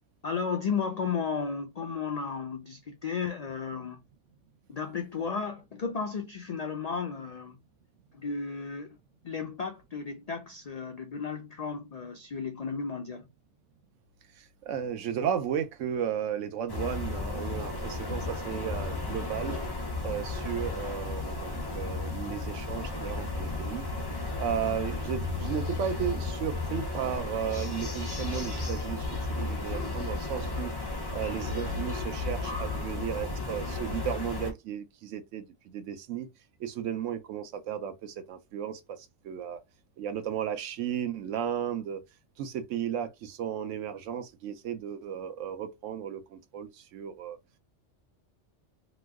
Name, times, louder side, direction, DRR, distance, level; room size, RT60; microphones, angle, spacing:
voice 1, 0.2-4.0 4.7-7.6 8.1-9.0 9.2-13.3, left 5 dB, 80° left, 0.3 m, -34 dB
voice 2, 14.6-19.6 20.0-23.8 24.4-29.1 29.4-30.7 31.1-36.3 36.6-39.6 40.0-42.0 42.4-47.4, right 9 dB, 85° right, 1.0 m, -34 dB
sound 1, 16.7-34.5, left 3 dB, 25° left, 0.5 m, -34 dB
3.0 x 2.1 x 3.4 m
omnidirectional pair, 1.2 m